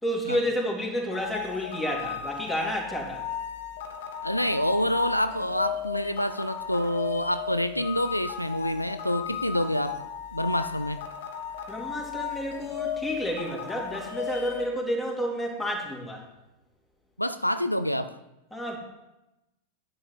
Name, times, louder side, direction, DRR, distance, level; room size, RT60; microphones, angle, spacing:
voice 1, 0.0-3.2 11.7-16.2 18.5-18.8, equal, 5° left, -2 dB, 2.5 m, -30 dB
sound 1, 1.1-14.7, left 9 dB, 55° left, 1.2 m, -36 dB
voice 2, 4.2-10.0 10.3-11.0 17.2-18.2, equal, 90° left, 12 dB, 0.4 m, -27 dB
10.5 x 7.0 x 4.2 m, 0.95 s
figure-of-eight pair, 90°, 0 cm